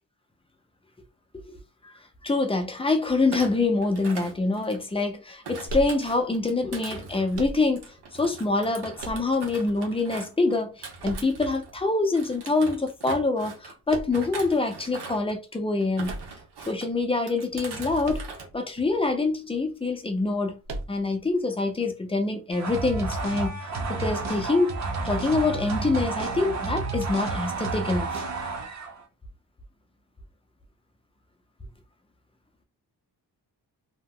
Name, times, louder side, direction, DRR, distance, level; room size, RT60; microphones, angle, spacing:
voice 1, 1.8-7.8 8.1-16.2 16.7-20.6 20.9-23.6 23.9-28.2, left 3 dB, 15° left, 0.4 m, -26 dB
Thump thud, 3.2-5.0 5.4-11.8 12.1-13.7 14.1-15.4 15.8-16.9 17.3-18.5 18.8-19.1, right 4 dB, 65° right, 1.0 m, -41 dB
sound 1, 5.7-6.4 7.3-8.0 9.0-9.7 11.0-11.8 13.9-14.5 16.0-16.9 18.0-18.6 18.9-19.0 20.6-21.3, right 2 dB, 90° right, 0.7 m, -36 dB
sound 2, 22.5-29.0, right 3 dB, 40° right, 0.7 m, -31 dB
2.8 x 2.0 x 3.6 m
wide cardioid pair, 160°, 42 cm